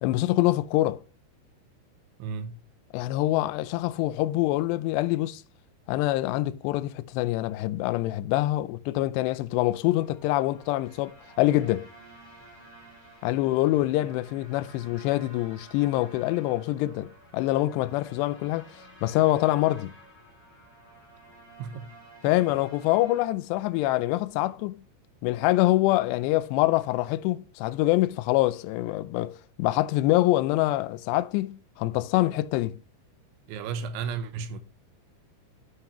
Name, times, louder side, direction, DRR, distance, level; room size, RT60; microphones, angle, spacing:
voice 1, 0.0-1.0 2.9-5.4 5.9-11.9 13.2-19.9 22.2-24.8 25.2-29.3 29.6-32.8, left 17 dB, 85° left, 2.5 m, -25 dB
voice 2, 2.2-2.6 21.6-21.9 33.5-34.6, right 5 dB, 85° right, 3.3 m, -33 dB
sound 1, 9.7-23.2, right 1 dB, 10° left, 1.5 m, -52 dB
11.5 x 5.7 x 3.0 m
omnidirectional pair, 5.3 m